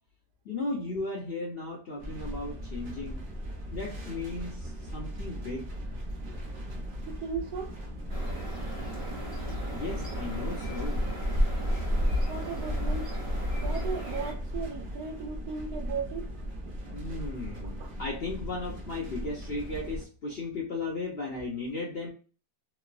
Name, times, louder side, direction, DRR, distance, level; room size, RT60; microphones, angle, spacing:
voice 1, 0.4-3.3 3.7-5.7 9.7-11.1 16.9-22.1, left 2 dB, 60° left, 0.6 m, -36 dB
sound 1, 2.0-20.0, equal, 40° right, 0.8 m, -38 dB
voice 2, 7.1-7.7 12.3-13.1 13.6-16.3 17.8-17.9, right 5 dB, 80° right, 1.1 m, -36 dB
sound 2, 8.1-14.3, equal, 20° right, 1.1 m, -31 dB
3.0 x 2.0 x 2.3 m
omnidirectional pair, 1.7 m